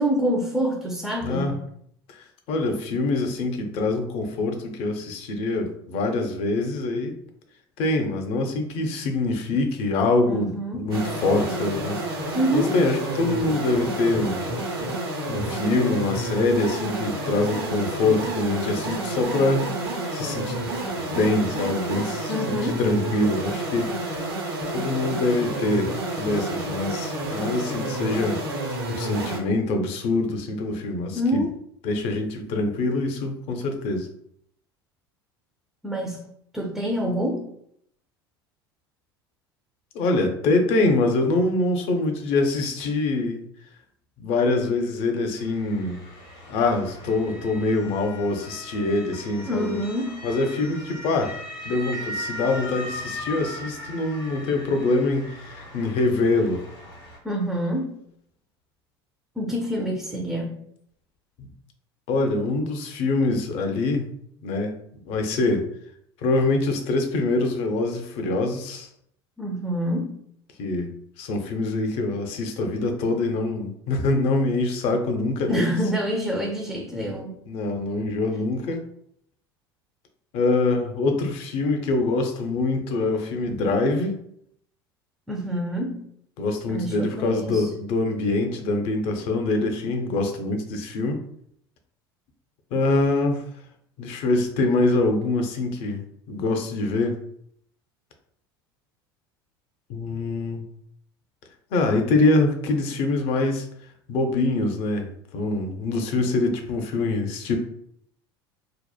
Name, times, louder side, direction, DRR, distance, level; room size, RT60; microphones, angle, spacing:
voice 1, 0.0-1.6 10.3-10.9 12.3-12.8 22.3-22.8 31.1-31.5 35.8-36.3 36.5-37.5 49.5-50.2 57.2-58.0 59.4-60.6 69.4-70.2 75.5-77.4 85.3-86.0 86.7-87.7, equal, ahead, 0 dB, 0.4 m, -26 dB
voice 2, 1.2-1.5 2.1-7.2 7.8-14.5 15.3-20.6 21.0-24.2 24.7-28.4 28.9-31.4 31.8-34.1 39.9-43.4 44.2-46.0 46.5-49.8 50.2-51.4 51.6-56.6 61.4-61.5 62.1-64.1 64.4-64.8 65.0-65.7 66.2-68.9 70.6-75.7 77.5-78.9 80.3-84.1 86.4-91.2 92.7-93.5 94.0-97.2 99.9-100.6 101.7-103.7 104.1-107.6, left 2 dB, 50° left, 4 dB, 0.5 m, -24 dB
sound 1, 10.9-29.4, right 1 dB, 75° right, 0.7 m, -29 dB
Motor vehicle (road) / Siren, 45.4-57.2, equal, 70° left, 1.1 m, -38 dB
2.9 x 2.0 x 2.3 m, 0.70 s
hypercardioid pair, 75°, 13 cm